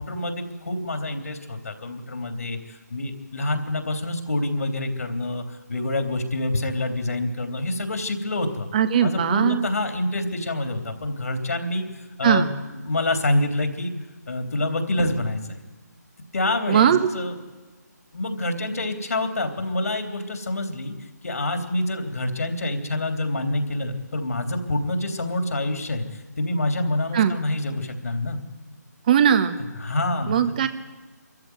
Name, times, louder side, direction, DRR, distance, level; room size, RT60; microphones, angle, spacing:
voice 1, 0.0-8.7 9.0-11.8 12.2-13.9 14.3-15.6 16.3-17.3 18.1-20.9 21.2-28.4 29.8-30.4, left 2 dB, 60° left, 5 dB, 3.3 m, -27 dB
voice 2, 8.7-9.7 12.2-12.5 16.7-17.1 27.1-27.4 29.1-29.6 30.3-30.7, right 8 dB, 30° right, 10 dB, 1.3 m, -19 dB
24.5 x 14.5 x 9.7 m, 1.3 s
figure-of-eight pair, 150°, 10 cm